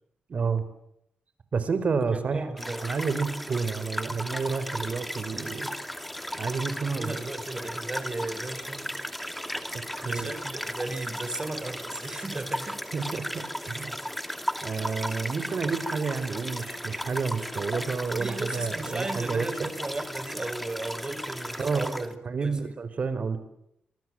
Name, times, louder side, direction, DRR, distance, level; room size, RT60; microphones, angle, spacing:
voice 1, 0.3-0.6 1.5-5.7 6.3-7.1 10.0-10.3 12.9-14.0 14.6-19.7 21.6-23.4, right 5 dB, 50° right, 12 dB, 4.6 m, -30 dB
voice 2, 2.1-2.9 7.0-8.9 9.6-12.8 13.1-13.2 18.2-22.1 22.4-22.7, right 2 dB, 25° right, 10 dB, 5.2 m, -36 dB
sound 1, 2.6-22.1, equal, 5° left, 2.4 m, -35 dB
26.5 x 23.5 x 7.8 m, 0.77 s
cardioid pair, 75°, 3 cm